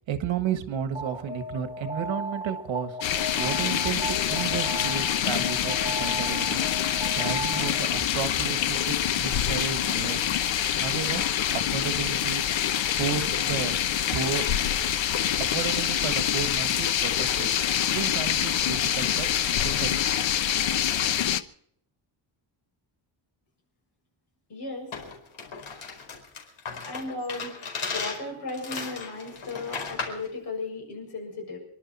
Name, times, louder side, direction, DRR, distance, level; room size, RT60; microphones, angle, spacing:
voice 1, 0.1-3.0 3.4-6.6 7.1-10.3 10.8-11.2 11.5-12.5 13.0-13.7 14.1-14.4 15.4-17.5 17.9-20.0, right 8 dB, 70° right, 8 dB, 1.7 m, -33 dB
Alarm, 0.9-8.0, right 1 dB, 10° right, 0.7 m, -36 dB
sound 1, 3.0-21.4, left 10 dB, 70° left, 1.0 m, -26 dB
voice 2, 24.5-24.9 26.8-27.6 27.9-31.6, left 3 dB, 55° left, 2 dB, 7.1 m, -35 dB
sound 2, 24.9-30.3, left 5 dB, 90° left, 4.8 m, -36 dB
27.5 x 11.5 x 4.3 m, 0.64 s
wide cardioid pair, 180°, 47 cm